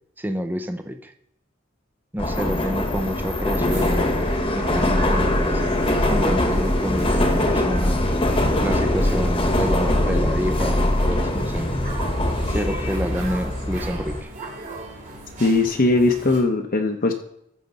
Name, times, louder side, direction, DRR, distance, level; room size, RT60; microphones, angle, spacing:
voice 1, 0.2-1.1 2.1-5.8 6.1-8.0 8.6-11.7 12.5-14.3, equal, 10° right, 7 dB, 0.6 m, -28 dB
Subway metro underground, 2.2-14.2, left 1 dB, 30° left, 1.2 m, -22 dB
sound 1, 3.7-16.4, right 1 dB, 40° right, 2.8 m, -37 dB
voice 2, 15.4-17.1, left 2 dB, 45° left, 4 dB, 0.8 m, -19 dB
14.5 x 6.7 x 4.0 m, 0.77 s
head